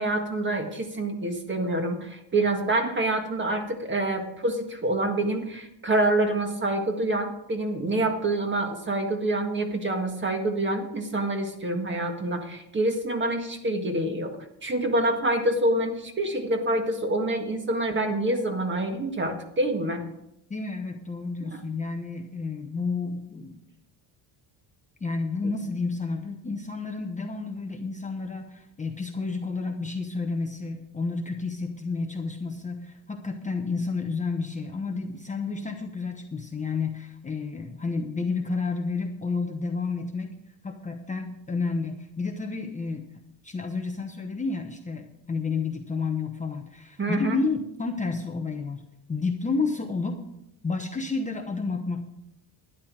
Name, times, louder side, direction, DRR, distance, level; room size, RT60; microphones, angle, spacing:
voice 1, 0.0-14.3 14.6-20.0 21.4-21.6 47.0-47.4, right 1 dB, 25° right, 5 dB, 1.7 m, -26 dB
voice 2, 20.5-23.6 25.0-40.3 40.6-43.0 43.4-50.2 50.6-52.1, left 4 dB, 15° left, 3 dB, 0.8 m, -31 dB
12.0 x 10.5 x 4.8 m, 0.83 s
cardioid pair, 135°, 46 cm